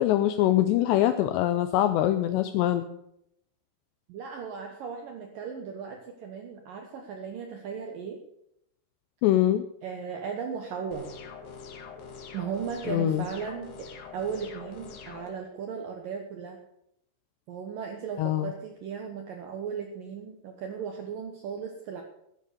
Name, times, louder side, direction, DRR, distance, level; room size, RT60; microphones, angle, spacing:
voice 1, 0.0-2.9 9.2-9.6 12.9-13.3 18.2-18.5, left 13 dB, 85° left, 9 dB, 2.6 m, -23 dB
voice 2, 4.1-8.2 9.8-11.1 12.3-16.6 17.5-22.0, right 6 dB, 75° right, 3 dB, 2.0 m, -36 dB
sound 1, 10.9-15.3, left 5 dB, 65° left, 3.6 m, -44 dB
14.0 x 9.3 x 6.6 m, 0.78 s
omnidirectional pair, 5.6 m